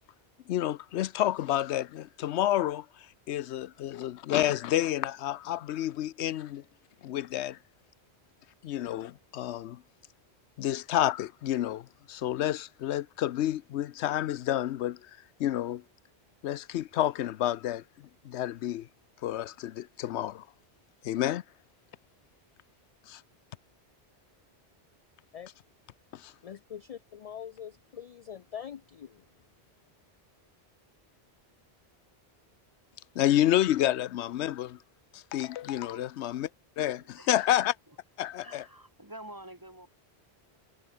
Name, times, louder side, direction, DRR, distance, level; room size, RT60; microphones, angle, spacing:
voice 1, 0.5-6.6 7.0-7.6 8.6-9.8 10.6-15.0 15.4-15.8 16.4-18.9 19.2-20.5 21.0-21.4 23.1-23.2 26.1-26.3 33.2-34.8 35.1-36.5 36.8-37.7 38.2-38.6, left 12 dB, 90° left, 0.9 m, -29 dB
voice 2, 26.4-29.3, left 9 dB, 50° left, 0.5 m, -43 dB
voice 3, 37.0-37.5 37.9-38.0 38.4-39.9, right 1 dB, 20° right, 2.5 m, -48 dB
omnidirectional pair, 1.1 m